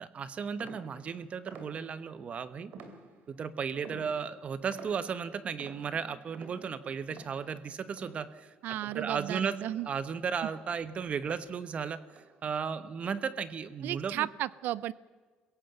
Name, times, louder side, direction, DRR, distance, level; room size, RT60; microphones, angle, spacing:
voice 1, 0.0-2.7 3.3-14.3, right 6 dB, 40° right, 14 dB, 1.1 m, -35 dB
sound 1, 0.6-2.2 2.7-3.5 3.8-9.5 9.7-11.8 12.1-12.5 13.0-13.5, right 4 dB, 65° right, 2.9 m, -52 dB
voice 2, 8.6-9.9 10.4-10.5 13.8-14.9, right 14 dB, 85° right, 20 dB, 0.6 m, -34 dB
22.5 x 16.5 x 7.9 m, 1.4 s
cardioid pair, 130°, 3 cm